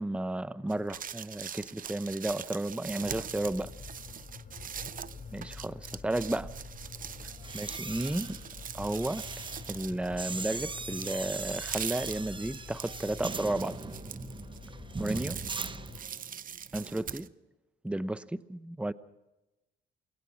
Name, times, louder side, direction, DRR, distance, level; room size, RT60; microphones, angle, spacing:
voice 1, 0.0-3.7 5.3-6.5 7.5-8.4 8.7-9.2 9.7-13.8 15.0-15.4 16.7-17.3 17.8-18.9, right 1 dB, 5° right, 15 dB, 0.8 m, -33 dB
sound 1, 0.7-17.3, right 8 dB, 45° right, 0.7 m, -42 dB
sound 2, 3.0-16.0, left 5 dB, 45° left, 4.6 m, -47 dB
voice 2, 4.4-5.3 15.7-17.2, right 5 dB, 75° right, 8 dB, 4.9 m, -60 dB
sound 3, 7.3-16.4 16.7-17.0, right 4 dB, 25° right, 1.1 m, -41 dB
28.5 x 20.5 x 6.2 m, 1.0 s
cardioid pair, 90°, 20 cm